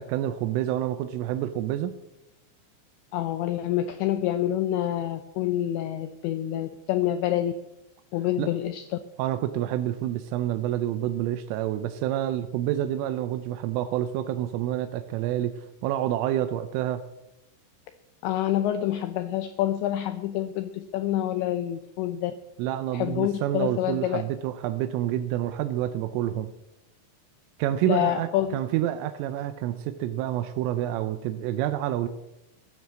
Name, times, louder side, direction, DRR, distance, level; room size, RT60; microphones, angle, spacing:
voice 1, 0.0-1.9 8.4-8.5 9.2-17.0 22.6-26.5 27.6-32.1, right 12 dB, 80° right, 9 dB, 3.2 m, -28 dB
voice 2, 3.1-7.5 8.1-8.8 18.2-22.3 22.9-24.2 27.9-28.6, left 12 dB, 85° left, 10 dB, 2.5 m, -27 dB
14.0 x 9.8 x 7.5 m, 0.89 s
omnidirectional pair, 6.0 m